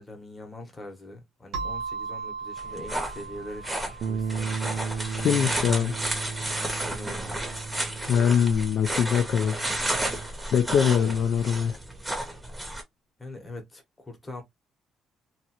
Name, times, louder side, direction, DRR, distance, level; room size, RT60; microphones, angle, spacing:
voice 1, 0.0-4.9 6.8-7.4 10.9-11.2 13.2-14.4, left 1 dB, 15° left, 1.0 m, -42 dB
sound 1, 1.5-5.9, right 5 dB, 85° right, 1.2 m, -38 dB
sound 2, 2.6-12.8, right 1 dB, 5° right, 0.9 m, -32 dB
sound 3, 4.0-10.3, right 5 dB, 50° right, 0.4 m, -35 dB
voice 2, 5.2-6.0 8.1-9.7 10.5-11.8, left 8 dB, 50° left, 0.5 m, -23 dB
3.0 x 2.5 x 2.8 m
cardioid pair, 160°, 0 cm